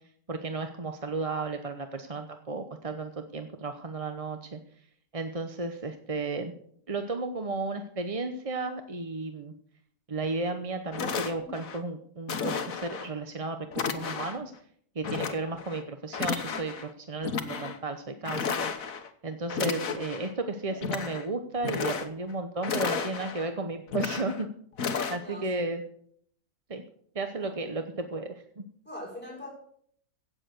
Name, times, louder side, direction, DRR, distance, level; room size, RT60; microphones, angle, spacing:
voice 1, 0.3-4.6 5.1-6.5 6.9-9.5 10.1-14.5 14.9-18.7 19.2-24.5 25.1-25.8 26.7-26.8 27.1-28.6, right 3 dB, 30° right, 7 dB, 0.8 m, -34 dB
sound 1, 10.5-10.6 10.9-11.8 12.3-13.1 13.7-14.5 15.0-15.8 16.1-16.9 17.2-17.8 18.3-19.1 19.5-20.3 20.7-21.3 21.6-22.3 22.6-23.5 23.9-24.4 24.8-25.2, left 6 dB, 65° left, 1.6 m, -33 dB
voice 2, 25.0-25.7 27.4-27.5 28.8-29.5, left 1 dB, 5° left, -3 dB, 5.9 m, -42 dB
17.0 x 7.6 x 6.7 m, 0.63 s
omnidirectional pair, 1.6 m